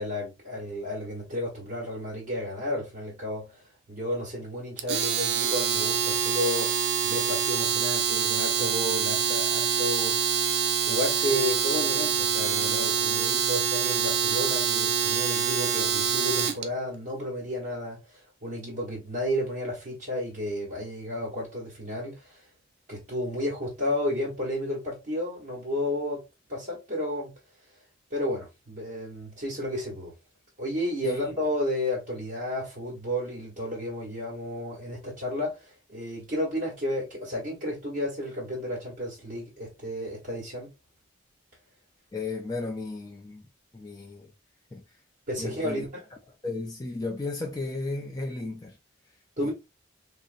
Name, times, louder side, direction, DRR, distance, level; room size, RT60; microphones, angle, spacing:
voice 1, 0.0-6.7 7.0-10.5 10.8-22.4 22.9-26.2 26.5-27.3 28.1-30.1 30.6-40.7 45.3-45.9 49.4-49.5, left 1 dB, 40° right, 1.0 m, -32 dB
Domestic sounds home sounds, 4.8-16.6, right 7 dB, 55° right, 0.5 m, -26 dB
voice 2, 31.0-31.3 42.1-43.4 43.7-44.3 44.7-44.8 45.4-45.8 46.4-48.8 49.4-49.5, left 3 dB, 20° left, 0.4 m, -34 dB
3.9 x 2.0 x 2.4 m
head